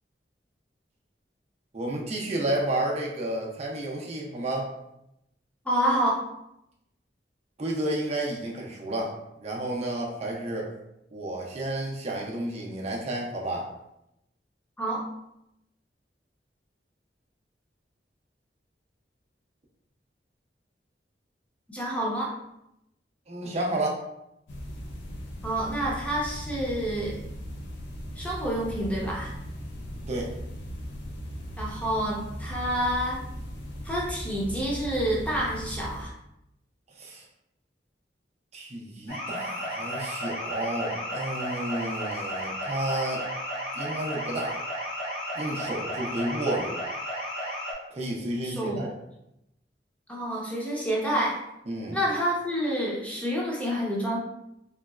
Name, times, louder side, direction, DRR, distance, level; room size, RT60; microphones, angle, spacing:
voice 1, 1.7-4.7 7.6-10.7 11.1-13.7 23.3-24.0 30.1-30.3 37.0-37.3 38.5-43.3 43.8-44.6 45.4-46.8 47.9-48.9 51.7-52.0, right 1 dB, 40° right, -2 dB, 0.5 m, -31 dB
voice 2, 5.6-6.2 14.8-15.0 21.7-22.3 25.4-27.2 28.2-29.3 31.6-33.2 33.8-36.1 48.4-48.9 50.1-51.4 51.9-54.2, right 1 dB, 10° left, -4 dB, 0.7 m, -28 dB
sound 1, 24.5-36.0, equal, 80° left, 0.6 m, -38 dB
sound 2, 39.1-47.7, equal, 65° left, 1.2 m, -33 dB
3.3 x 3.0 x 2.3 m, 0.83 s
head